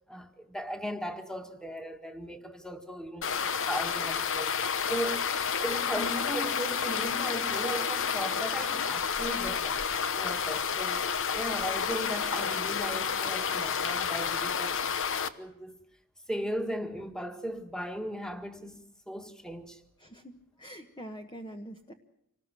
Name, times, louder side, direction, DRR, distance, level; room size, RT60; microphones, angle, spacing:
voice 1, 0.1-4.5 4.9-5.3 5.6-9.8 10.1-15.0 15.4-15.8 16.3-18.8 19.1-19.8, equal, 5° left, 1.9 m, -37 dB
sound 1, 3.2-15.3, left 7 dB, 60° left, 1.1 m, -30 dB
voice 2, 20.0-21.9, equal, 20° left, 1.2 m, -44 dB
26.0 x 19.0 x 7.5 m
head